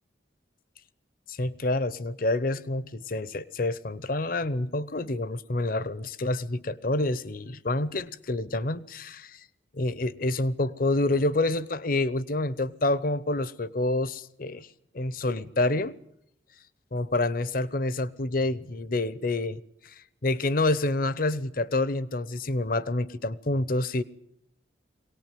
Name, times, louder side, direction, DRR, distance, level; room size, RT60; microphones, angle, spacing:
voice 1, 1.3-9.4 9.7-14.7 14.9-16.0 16.9-19.9 20.2-24.0, left 2 dB, 50° left, 0.9 m, -28 dB
23.0 x 18.5 x 9.2 m
head